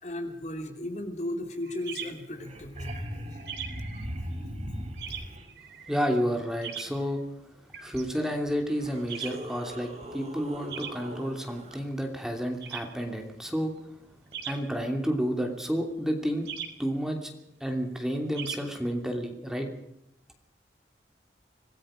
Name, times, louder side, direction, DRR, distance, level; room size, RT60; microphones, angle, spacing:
voice 1, 0.0-2.9 3.3-3.4 3.8-4.0 5.1-5.2, left 1 dB, 40° left, 5 dB, 2.9 m, -36 dB
sound 1, 1.6-19.2, right 8 dB, 70° right, 3.7 m, -43 dB
sound 2, 2.0-2.1 2.3-5.4 7.9-8.0 8.7-11.8 14.3-14.4, equal, 40° right, 4.7 m, -39 dB
voice 2, 5.9-7.5 7.8-13.7 14.5-16.5 16.8-17.3 17.6-19.7, equal, 5° right, 3 dB, 2.9 m, -30 dB
26.0 x 19.5 x 5.1 m, 0.81 s
head